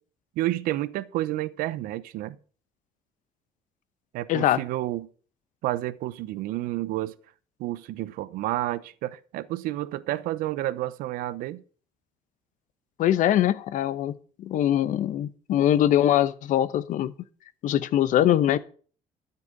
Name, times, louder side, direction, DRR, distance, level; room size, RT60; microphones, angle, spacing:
voice 1, 0.4-2.4 4.1-5.1 5.6-7.2 7.6-11.6, right 15 dB, 85° right, 0.9 m, -30 dB
voice 2, 13.0-17.1 17.6-18.6, left 11 dB, 65° left, 1.0 m, -22 dB
13.5 x 5.8 x 8.9 m
cardioid pair, 130°, 14 cm